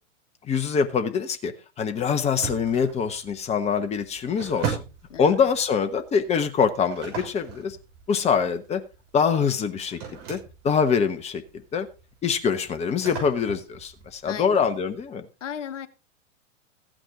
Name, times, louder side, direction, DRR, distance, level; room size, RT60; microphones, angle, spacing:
voice 1, 0.5-1.5 1.8-4.8 5.2-7.8 8.1-8.8 9.1-10.0 10.3-10.4 10.6-11.4 11.7-11.9 12.2-15.3, left 6 dB, 15° left, 1.0 m, -24 dB
sound 1, 2.4-15.0, right 7 dB, 45° right, 6.4 m, -39 dB
voice 2, 14.3-14.7 15.4-15.9, left 9 dB, 70° left, 1.1 m, -35 dB
14.5 x 9.0 x 3.7 m
hypercardioid pair, 110°, 38 cm